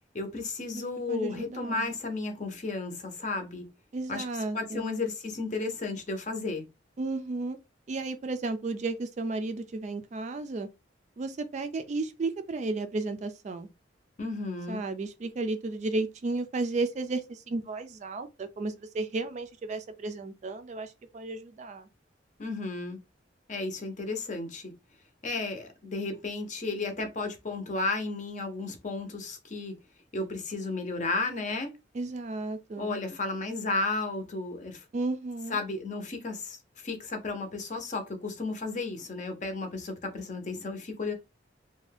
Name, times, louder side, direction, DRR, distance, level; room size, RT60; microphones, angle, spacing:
voice 1, 0.1-3.7 4.1-4.2 4.5-6.7 14.2-14.8 22.4-23.0 23.5-24.7 25.2-29.7 30.1-31.8 32.8-34.8 35.5-41.1, left 3 dB, 40° left, 0.6 m, -33 dB
voice 2, 1.1-1.9 3.9-4.9 7.0-7.6 7.9-10.7 11.2-13.7 14.7-21.9 31.9-33.0 34.9-35.6, right 3 dB, 40° right, 0.3 m, -33 dB
2.5 x 2.2 x 3.3 m
head